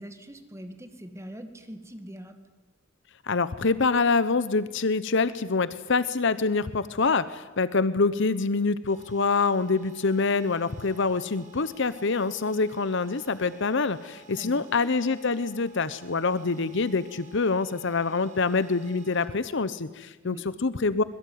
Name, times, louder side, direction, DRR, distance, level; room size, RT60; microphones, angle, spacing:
voice 1, 0.0-2.4 14.3-14.7 20.2-20.5, equal, 15° right, 8 dB, 2.0 m, -42 dB
voice 2, 3.2-21.0, left 4 dB, 60° left, 15 dB, 0.9 m, -25 dB
sound 1, 8.9-19.3, right 8 dB, 35° right, 4.2 m, -54 dB
25.5 x 22.5 x 9.5 m, 1.2 s
head